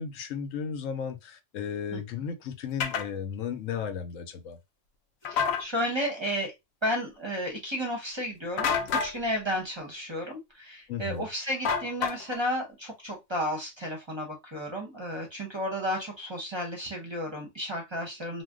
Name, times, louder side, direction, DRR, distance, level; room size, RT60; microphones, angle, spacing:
voice 1, 0.0-4.6 10.9-11.3, left 7 dB, 85° left, 1.0 m, -35 dB
sound 1, 2.8-3.1 5.3-5.6 8.6-9.1 11.7-12.4, left 6 dB, 65° left, 0.7 m, -28 dB
voice 2, 5.2-6.5 6.8-18.4, equal, 25° right, 0.7 m, -33 dB
2.5 x 2.1 x 3.5 m
omnidirectional pair, 1.3 m